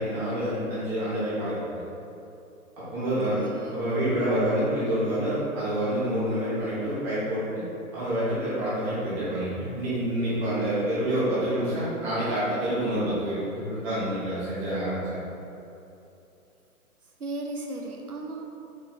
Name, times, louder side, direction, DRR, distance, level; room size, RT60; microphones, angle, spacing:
voice 1, 0.0-1.8 2.9-3.4 3.7-7.6 7.9-15.3, right 1 dB, 5° right, -12 dB, 0.5 m, -27 dB
voice 2, 3.0-3.8 17.2-18.4, right 2 dB, 90° right, 1 dB, 0.8 m, -36 dB
4.3 x 3.2 x 3.9 m, 2.8 s
figure-of-eight pair, 125°, 43 cm